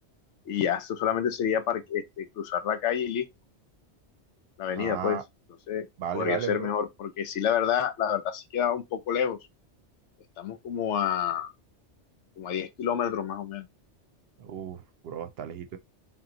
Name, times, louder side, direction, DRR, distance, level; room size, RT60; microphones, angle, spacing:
voice 1, 0.5-3.2 4.6-5.2 5.7-5.9 6.1-9.4 10.4-11.5 12.4-13.7, left 9 dB, 80° left, 1.0 m, -28 dB
voice 2, 4.8-5.2 6.0-6.7 14.4-15.8, right 8 dB, 65° right, 0.7 m, -34 dB
3.6 x 2.9 x 3.8 m
omnidirectional pair, 1.2 m